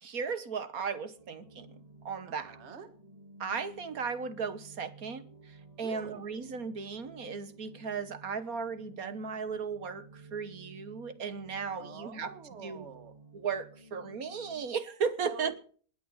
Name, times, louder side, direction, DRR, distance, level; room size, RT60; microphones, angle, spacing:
voice 1, 0.0-1.7 2.0-2.5 3.4-5.2 5.8-12.3 12.6-12.9 13.3-15.5, right 6 dB, 55° right, 1.4 m, -36 dB
sound 1, 1.2-14.6, right 2 dB, 20° right, 2.2 m, -54 dB
voice 2, 2.3-2.9 5.8-6.2 11.8-13.2 15.2-15.6, right 5 dB, 40° right, 1.8 m, -46 dB
20.0 x 9.6 x 5.6 m
omnidirectional pair, 2.0 m